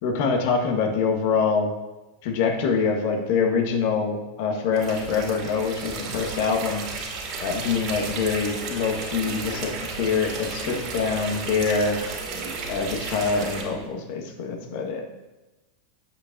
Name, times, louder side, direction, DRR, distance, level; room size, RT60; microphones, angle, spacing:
voice 1, 0.0-1.7 2.2-6.8 7.4-9.7 10.0-12.0 12.7-15.0, left 5 dB, 60° left, 3 dB, 1.5 m, -25 dB
sound 1, 4.7-13.6, right 4 dB, 50° right, 2.4 m, -34 dB
sound 2, 4.9-13.9, right 3 dB, 70° right, 2.3 m, -42 dB
8.8 x 8.3 x 2.7 m, 1.1 s
figure-of-eight pair, 90°, 0 cm